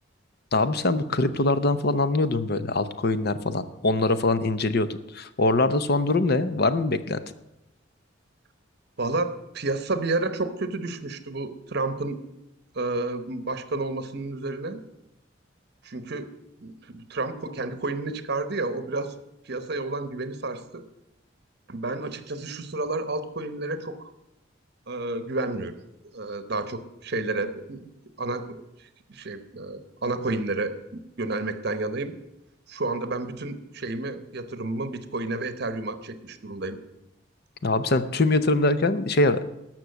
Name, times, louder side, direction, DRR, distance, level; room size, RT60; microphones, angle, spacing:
voice 1, 0.5-4.9 5.1-7.2 37.6-39.4, left 2 dB, 55° left, 12 dB, 0.7 m, -23 dB
voice 2, 9.0-12.2 12.7-14.8 15.8-16.3 16.6-19.1 19.4-20.8 21.7-24.1 24.9-25.7 26.1-27.9 28.2-32.1 32.7-36.8, right 2 dB, 55° right, 10 dB, 1.0 m, -31 dB
13.0 x 6.2 x 8.1 m, 0.89 s
head